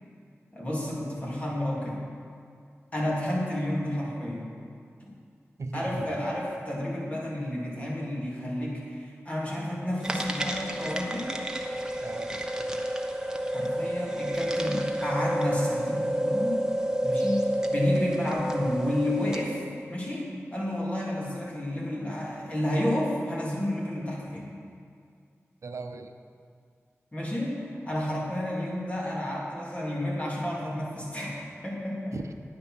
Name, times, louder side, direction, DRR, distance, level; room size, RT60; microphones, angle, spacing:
voice 1, 0.5-2.0 2.9-4.5 5.7-11.3 13.5-16.6 17.0-17.4 17.7-19.6 19.9-24.5 27.1-32.2, left 1 dB, 25° left, -5 dB, 3.1 m, -31 dB
voice 2, 5.6-6.2 12.0-12.3 25.6-26.1 32.1-32.3, right 3 dB, 75° right, 7 dB, 0.8 m, -37 dB
sound 1, 10.0-19.6, right 1 dB, 15° right, 1.1 m, -30 dB
10.0 x 9.2 x 6.2 m, 2.3 s
wide cardioid pair, 75°, 5 cm